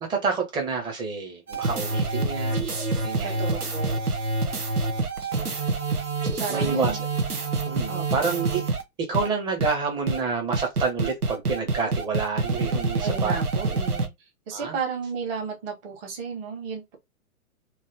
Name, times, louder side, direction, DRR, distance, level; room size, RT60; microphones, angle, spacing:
voice 1, 0.0-2.6 3.0-3.5 5.2-5.6 6.5-6.9 7.6-8.7 9.0-13.4 14.5-14.8, right 5 dB, 10° right, 0.7 m, -28 dB
sound 1, 1.5-8.8 9.1-9.3 9.6-9.7 10.1-10.2 10.5-14.1, right 3 dB, 85° right, 1.0 m, -27 dB
voice 2, 3.2-4.0 6.4-7.0 7.9-8.4 13.0-14.1 14.5-17.0, right 5 dB, 40° right, 1.6 m, -33 dB
3.1 x 2.7 x 2.8 m
figure-of-eight pair, 120°, 44 cm